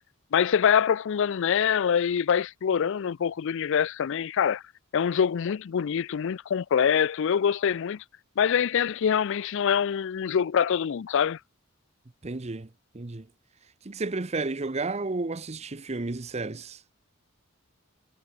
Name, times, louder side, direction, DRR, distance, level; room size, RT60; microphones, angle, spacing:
voice 1, 0.3-4.6 4.9-8.0 8.4-11.4, left 7 dB, 60° left, 0.4 m, -24 dB
voice 2, 12.2-12.7 12.9-13.3 13.8-16.8, right 3 dB, 30° right, 0.8 m, -32 dB
head